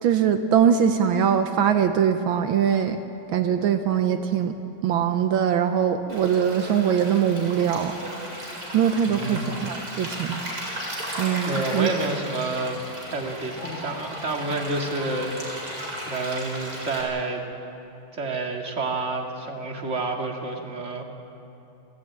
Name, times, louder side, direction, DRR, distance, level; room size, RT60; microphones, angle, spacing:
voice 1, 0.0-3.0 3.3-4.5 4.8-7.9 8.7-10.4 11.2-11.9, right 8 dB, 80° right, 7 dB, 1.7 m, -22 dB
Stream, 6.1-17.0, right 1 dB, 50° right, 5.0 m, -35 dB
voice 2, 9.1-9.5 11.5-12.8 13.1-15.4 15.6-17.4 18.1-21.0, right 2 dB, 35° right, 1 dB, 2.3 m, -29 dB
29.0 x 13.5 x 8.7 m, 2.9 s
omnidirectional pair, 2.2 m